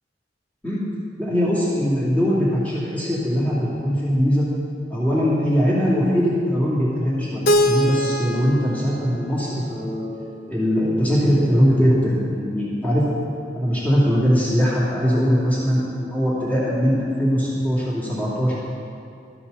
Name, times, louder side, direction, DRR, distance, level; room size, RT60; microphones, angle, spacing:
voice 1, 1.2-4.4 4.9-10.1 10.5-13.0 13.5-18.6, equal, 10° left, -8 dB, 2.6 m, -21 dB
Keyboard (musical), 7.5-10.4, equal, 55° left, 0.6 m, -24 dB
13.0 x 7.0 x 6.9 m, 2.5 s
head